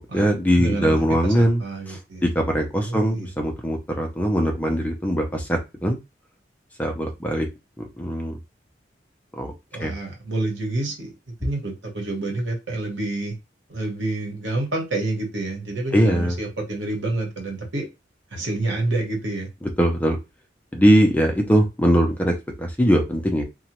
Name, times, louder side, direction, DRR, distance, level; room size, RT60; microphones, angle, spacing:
voice 1, 0.0-1.6 1.9-6.0 6.8-7.5 8.0-8.4 9.4-9.5 9.8-9.9 15.9-16.3 19.6-20.2 20.7-23.4, equal, 10° left, 0.5 m, -21 dB
voice 2, 0.6-1.0 1.2-2.2 2.8-3.3 9.7-11.1 11.4-13.4 13.7-17.8 18.3-19.5, right 2 dB, 85° right, 1.1 m, -28 dB
2.9 x 2.2 x 2.9 m
head